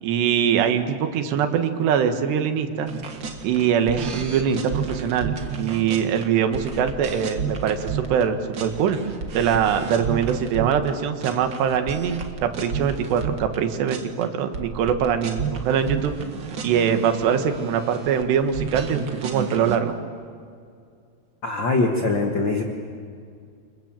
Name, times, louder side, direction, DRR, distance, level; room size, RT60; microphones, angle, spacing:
voice 1, 0.0-2.9 3.4-9.0 9.3-16.1 16.6-20.0, right 8 dB, 85° right, 7 dB, 3.7 m, -23 dB
sound 1, 2.9-8.2 8.5-10.9 11.2-13.6 13.9-14.2 14.5-19.8, right 6 dB, 55° right, 1.3 m, -32 dB
voice 2, 21.4-22.6, left 3 dB, 55° left, 3 dB, 1.2 m, -22 dB
29.0 x 26.0 x 7.6 m, 2.3 s
omnidirectional pair, 4.8 m